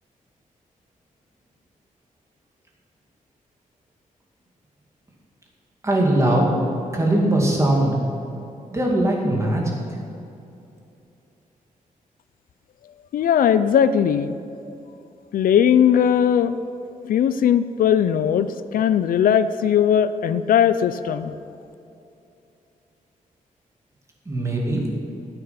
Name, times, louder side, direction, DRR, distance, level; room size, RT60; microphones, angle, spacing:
voice 1, 5.8-6.6 6.9-8.0 8.7-9.8 24.3-24.9, right 1 dB, 20° right, -2 dB, 2.4 m, -20 dB
voice 2, 13.1-14.4 15.3-16.6 17.0-21.3, left 8 dB, 85° left, 13 dB, 0.5 m, -19 dB
12.5 x 9.0 x 5.9 m, 2.7 s
wide cardioid pair, 130°, 14 cm